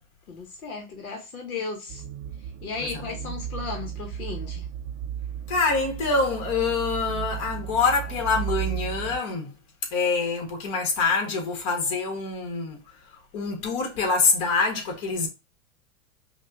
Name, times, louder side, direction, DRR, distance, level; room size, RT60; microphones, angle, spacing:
voice 1, 0.3-2.0 2.6-4.7, left 4 dB, 80° left, 1.0 m, -35 dB
sound 1, 1.9-9.2, right 9 dB, 35° right, 0.4 m, -34 dB
voice 2, 5.5-9.5 9.9-12.8 13.3-15.3, left 4 dB, 45° left, 1.6 m, -25 dB
5.1 x 2.3 x 2.7 m
hypercardioid pair, 95°, 43 cm